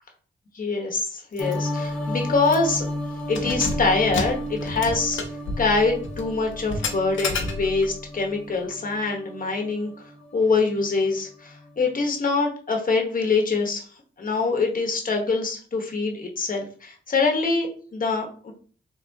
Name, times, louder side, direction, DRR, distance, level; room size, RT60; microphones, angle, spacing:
voice 1, 0.6-2.8 3.3-5.2 5.6-10.1 10.3-13.9 14.2-18.5, left 3 dB, 45° left, 2 dB, 0.9 m, -24 dB
Keys jangling, 1.4-1.6 1.9-2.0 2.4-2.8 3.2-8.0, left 3 dB, 85° left, 0.6 m, -31 dB
sound 1, 1.4-10.9 11.3-11.9, equal, 5° left, 1.0 m, -33 dB
3.5 x 3.4 x 2.7 m, 0.42 s
cardioid pair, 70°, 19 cm